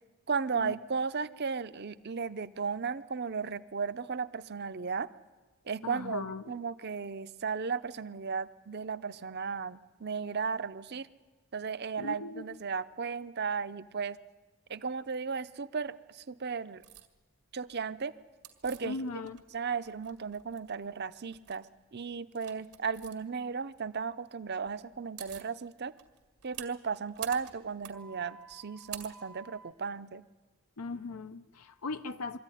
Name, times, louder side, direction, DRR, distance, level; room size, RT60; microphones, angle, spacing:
voice 1, 0.3-5.1 5.7-11.1 11.5-14.2 14.7-16.8 17.5-18.1 18.6-19.1 19.5-21.7 21.9-25.9 26.4-30.2, right 5 dB, 45° right, 14 dB, 0.7 m, -35 dB
voice 2, 5.8-6.4 12.0-12.4 18.8-19.4 30.8-32.4, left 3 dB, 80° left, 10 dB, 0.7 m, -38 dB
sound 1, 16.8-17.1 18.4-19.5 19.8-20.8 21.3-21.6 22.3-23.1 24.7-24.8 24.9-25.5 26.0-29.7, right 11 dB, 85° right, 2.0 m, -47 dB
23.0 x 14.5 x 10.0 m, 1.3 s
head